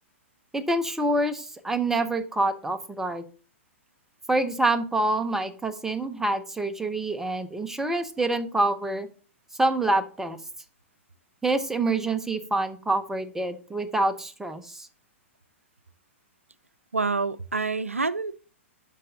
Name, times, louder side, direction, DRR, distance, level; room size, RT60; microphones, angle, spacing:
voice 1, 0.5-3.2 4.3-9.1 9.6-10.4 11.4-14.9, right 2 dB, 5° right, 0.8 m, -26 dB
voice 2, 16.9-18.4, right 4 dB, 90° right, 0.4 m, -27 dB
12.0 x 5.3 x 2.8 m
figure-of-eight pair, 105°, 7 cm